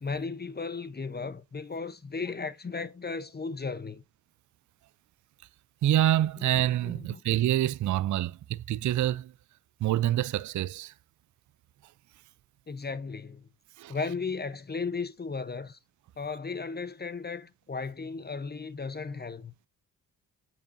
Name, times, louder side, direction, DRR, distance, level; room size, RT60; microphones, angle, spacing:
voice 1, 0.0-4.0 6.4-6.5 6.8-7.2 12.7-13.5 13.9-15.8 16.2-19.5, left 4 dB, 25° left, 0.8 m, -35 dB
voice 2, 5.8-9.3 9.8-10.9 13.8-14.0, right 13 dB, 55° right, 0.4 m, -26 dB
7.7 x 7.2 x 2.6 m
cardioid pair, 80°, 37 cm